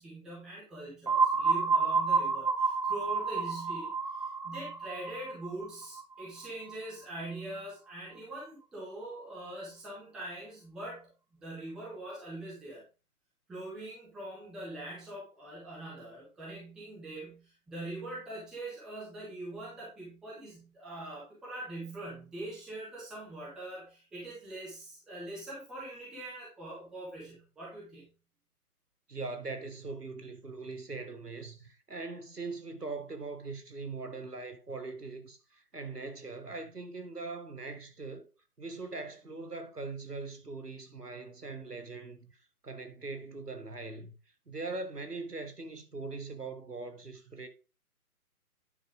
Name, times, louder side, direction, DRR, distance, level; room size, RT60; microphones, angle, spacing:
voice 1, 0.0-11.1 11.4-12.8 13.5-28.1, right 1 dB, ahead, 0.8 m, -43 dB
sound 1, 1.1-6.7, right 4 dB, 30° right, 0.6 m, -30 dB
voice 2, 29.1-38.3 38.6-42.4 42.6-44.1 44.5-47.5, right 3 dB, 85° right, 1.6 m, -41 dB
9.4 x 5.1 x 3.7 m
figure-of-eight pair, 140°, 46 cm